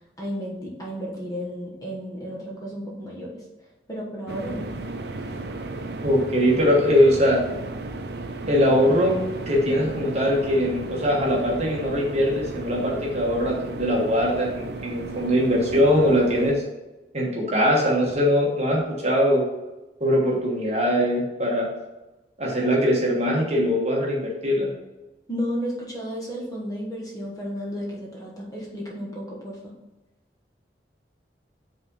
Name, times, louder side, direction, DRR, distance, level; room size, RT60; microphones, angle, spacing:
voice 1, 0.2-4.7 25.3-29.7, equal, 20° left, -3 dB, 1.3 m, -33 dB
sound 1, 4.3-16.5, right 2 dB, 65° right, 0.5 m, -35 dB
voice 2, 6.0-7.4 8.5-9.2 9.5-16.5 17.1-19.4 20.0-21.7 22.4-24.7, equal, 40° right, -2 dB, 1.3 m, -21 dB
5.3 x 3.6 x 5.4 m, 1.0 s
head